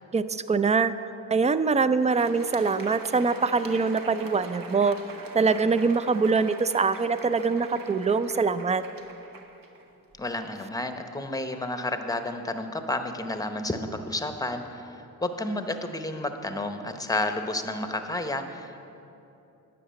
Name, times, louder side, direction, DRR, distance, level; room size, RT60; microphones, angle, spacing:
voice 1, 0.1-0.9 1.3-5.0 5.3-8.8, right 4 dB, 20° right, 13 dB, 0.3 m, -23 dB
Crowd, 2.0-10.4, right 3 dB, 55° right, 1.0 m, -43 dB
voice 2, 10.2-18.8, left 2 dB, 10° left, 7 dB, 0.8 m, -31 dB
10.0 x 5.0 x 7.6 m, 2.9 s
supercardioid pair, 45°, 40 cm